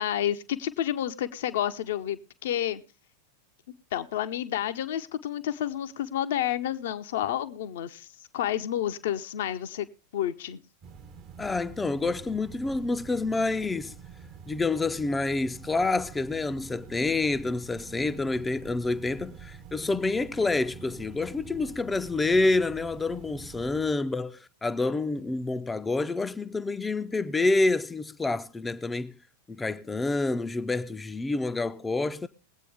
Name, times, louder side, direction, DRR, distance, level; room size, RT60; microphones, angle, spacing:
voice 1, 0.0-2.8 3.9-8.1 8.3-9.9 10.1-10.6, left 11 dB, 55° left, 0.7 m, -30 dB
sound 1, 10.8-23.9, right 6 dB, 30° right, 0.8 m, -47 dB
voice 2, 11.4-13.9 14.5-29.1 29.5-32.3, left 3 dB, 10° left, 0.5 m, -28 dB
21.0 x 8.3 x 3.4 m
figure-of-eight pair, 90°, 0 cm